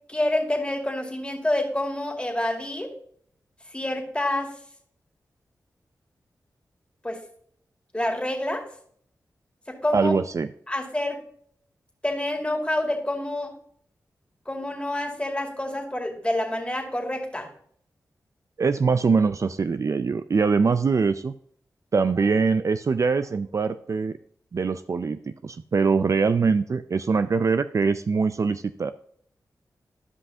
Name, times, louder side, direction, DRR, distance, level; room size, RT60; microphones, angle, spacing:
voice 1, 0.1-2.9 3.7-4.5 7.0-7.2 7.9-8.6 9.7-10.1 10.7-11.2 12.0-13.5 14.5-17.5, left 1 dB, 15° left, 2 dB, 2.1 m, -27 dB
voice 2, 9.9-10.5 18.6-21.3 21.9-24.2 24.5-28.9, right 5 dB, 50° right, 12 dB, 0.4 m, -23 dB
12.5 x 5.5 x 2.7 m, 0.63 s
cardioid pair, 40°, 7 cm